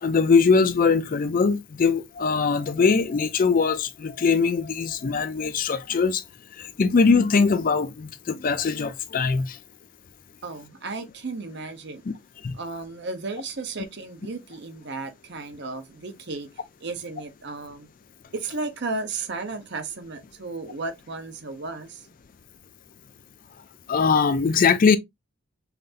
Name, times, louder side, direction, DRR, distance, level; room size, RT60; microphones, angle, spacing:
voice 1, 0.0-6.2 6.6-9.6 12.1-12.2 12.4-12.5 23.9-25.0, left 5 dB, 40° left, 0.4 m, -21 dB
voice 2, 10.4-12.0 12.5-17.9 18.3-22.1, right 3 dB, 50° right, 0.8 m, -34 dB
5.7 x 2.6 x 2.5 m
head